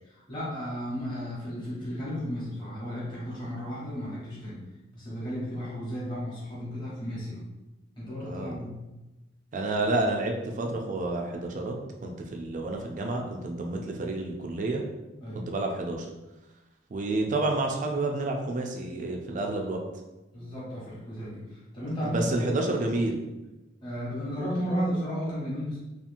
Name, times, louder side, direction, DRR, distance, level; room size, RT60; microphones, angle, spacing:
voice 1, 0.3-4.6 4.9-7.4 8.0-8.7 15.2-15.5 20.3-22.6 23.8-25.8, equal, 25° left, -8 dB, 1.0 m, -34 dB
voice 2, 8.3-8.6 9.5-11.7 12.0-14.8 15.3-16.1 16.9-19.8 22.0-23.2, right 2 dB, 40° right, 2 dB, 0.3 m, -29 dB
2.8 x 2.4 x 2.5 m, 1.0 s
head